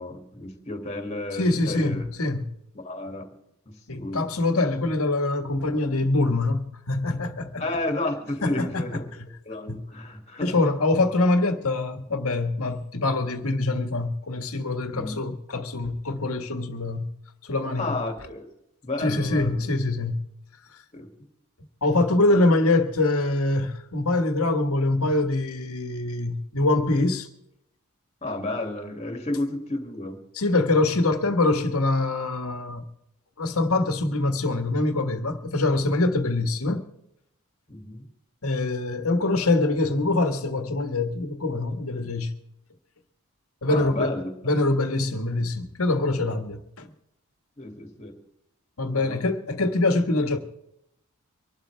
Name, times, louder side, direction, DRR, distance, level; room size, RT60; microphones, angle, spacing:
voice 1, 0.0-2.0 2.7-3.3 3.7-4.3 7.6-9.0 9.5-10.6 14.9-15.2 17.8-18.5 18.8-19.6 20.9-21.1 22.3-22.4 28.2-30.2 31.0-31.1 37.7-38.1 43.7-44.3 47.6-48.2 48.9-49.2, left 2 dB, 30° left, 2.5 m, -32 dB
voice 2, 1.4-2.4 3.9-7.6 8.4-8.8 9.7-9.8 10.4-17.1 17.4-18.0 19.0-20.2 21.8-27.3 30.3-32.8 33.4-36.8 38.4-42.3 43.6-44.2 44.4-46.9 48.8-50.4, left 2 dB, 80° left, 1.7 m, -24 dB
24.5 x 12.0 x 3.5 m
head